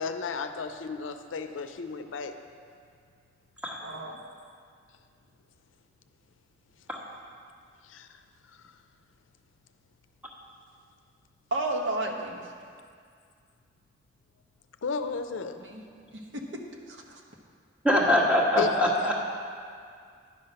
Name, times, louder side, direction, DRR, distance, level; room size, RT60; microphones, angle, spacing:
voice 1, 0.0-2.3 7.9-8.1 14.8-15.6 18.6-18.8, left 4 dB, 90° left, 8 dB, 0.5 m, -33 dB
voice 2, 3.8-4.2 11.5-12.5 15.6-15.8 16.1-16.4 16.9-17.2, right 2 dB, 70° right, 1 dB, 1.0 m, -32 dB
voice 3, 17.8-19.1, left 1 dB, 5° right, -4 dB, 1.3 m, -23 dB
10.5 x 5.8 x 5.4 m, 2.2 s
head